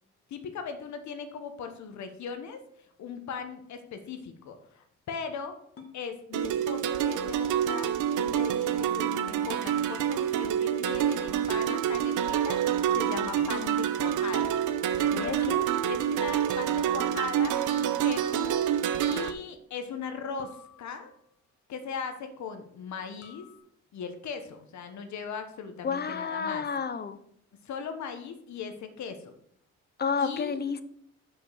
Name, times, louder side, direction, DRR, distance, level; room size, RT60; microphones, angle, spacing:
voice 1, 0.3-2.6 3.0-5.6 5.9-12.6 12.9-14.6 14.9-18.5 19.1-21.1 21.7-23.5 23.9-26.7 27.6-29.3 30.2-30.6, left 6 dB, 65° left, 7 dB, 1.2 m, -39 dB
sound 1, 5.8-6.0 8.4-8.6 10.9-11.1 13.4-14.3 16.5-17.1 20.4-21.3 23.2-23.6, left 6 dB, 50° left, 1.6 m, -51 dB
sound 2, 6.3-19.3, right 9 dB, 80° right, 0.7 m, -27 dB
voice 2, 15.1-15.6 25.8-27.2 30.0-30.8, left 5 dB, 35° left, 13 dB, 0.7 m, -30 dB
6.0 x 5.2 x 6.3 m, 0.68 s
cardioid pair, 90°, 30 cm